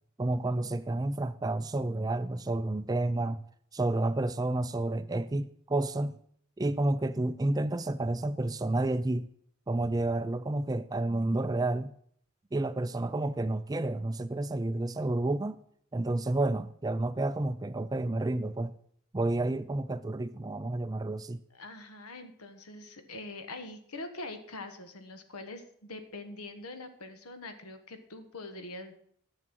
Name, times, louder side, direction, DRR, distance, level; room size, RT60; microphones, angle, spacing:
voice 1, 0.2-3.4 3.7-6.2 6.6-9.3 9.7-11.9 12.5-15.6 15.9-18.7 19.1-21.4, right 2 dB, 15° right, 0.3 m, -30 dB
voice 2, 21.5-28.9, left 2 dB, 90° left, 1.4 m, -43 dB
11.0 x 7.3 x 6.1 m
head